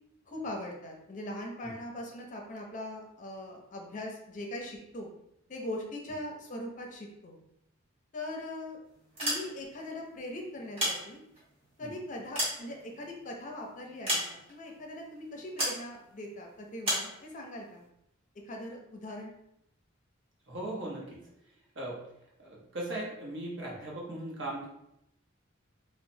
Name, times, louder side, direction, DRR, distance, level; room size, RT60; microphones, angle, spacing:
voice 1, 0.3-5.1 5.5-7.4 8.1-8.8 9.2-11.2 11.8-17.8 18.5-19.4, left 1 dB, 40° left, 1 dB, 0.5 m, -41 dB
sound 1, 9.0-9.9 10.5-11.5 12.0-13.3 14.1-14.7 15.6-15.9 16.8-17.1, equal, 30° right, 1.1 m, -32 dB
voice 2, 20.5-21.2 21.7-22.0 22.4-24.7, right 1 dB, 65° right, -3 dB, 0.8 m, -38 dB
3.0 x 2.0 x 2.6 m, 0.80 s
head